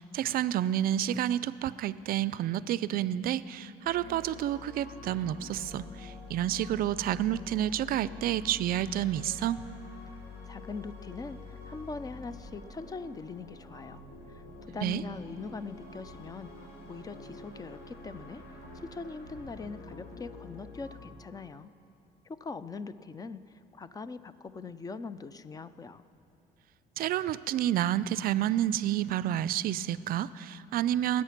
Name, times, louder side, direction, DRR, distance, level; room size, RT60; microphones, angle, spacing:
voice 1, 0.0-9.6 14.8-15.0 27.0-31.2, right 12 dB, 60° right, 17 dB, 0.4 m, -29 dB
sound 1, 3.8-21.1, left 3 dB, 85° left, 2.7 m, -47 dB
voice 2, 10.4-14.0 14.3-14.4 14.7-18.4 18.7-21.7 22.2-26.0, left 4 dB, 20° left, 14 dB, 0.5 m, -42 dB
19.5 x 8.5 x 5.9 m, 2.9 s
cardioid pair, 110°, 17 cm